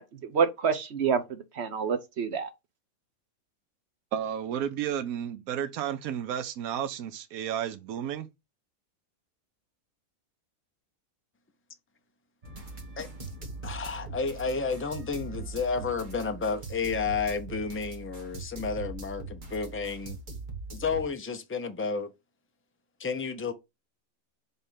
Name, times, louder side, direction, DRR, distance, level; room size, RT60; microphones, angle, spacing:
voice 1, 0.0-2.5, right 6 dB, 55° right, 1.1 m, -28 dB
voice 2, 4.1-8.3, right 9 dB, 75° right, 1.1 m, -32 dB
sound 1, 12.4-21.1, right 3 dB, 35° right, 1.6 m, -41 dB
voice 3, 13.6-20.2 20.7-22.1 23.0-23.5, left 5 dB, 20° left, 0.4 m, -31 dB
5.5 x 3.4 x 5.8 m
omnidirectional pair, 1.5 m